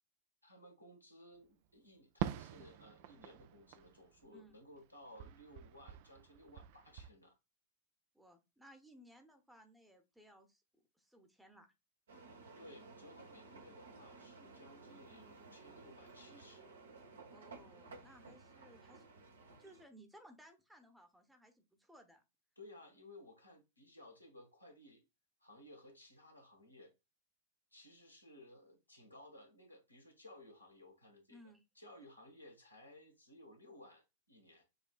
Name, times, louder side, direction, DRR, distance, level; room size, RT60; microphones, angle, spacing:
voice 1, 0.4-7.4 12.6-16.7 22.6-25.0 25.4-26.9 27.7-31.4 31.7-34.6, left 1 dB, 85° left, 1.2 m, -58 dB
Fireworks, 2.2-4.8 5.1-7.1, right 12 dB, 50° right, 0.3 m, -45 dB
voice 2, 8.1-10.6 11.0-11.7 17.3-19.1 19.6-22.2 31.3-31.6, equal, 5° right, 0.9 m, -61 dB
sound 1, 12.1-19.8, right 3 dB, 65° right, 0.9 m, -56 dB
6.6 x 2.6 x 2.4 m
figure-of-eight pair, 90°, 0 cm